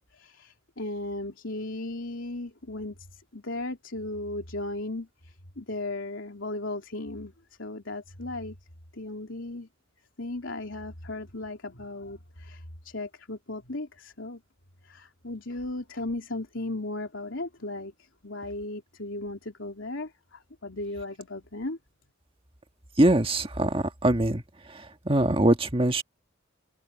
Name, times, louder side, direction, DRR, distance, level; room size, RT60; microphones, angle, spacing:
voice 1, 0.0-7.3 7.6-8.6 8.9-9.7 10.2-14.4 14.8-17.9 18.2-21.8, left 2 dB, 70° left, 3.6 m, -36 dB
voice 2, 23.0-24.4 25.0-26.0, right 1 dB, 25° right, 1.6 m, -22 dB
open air
head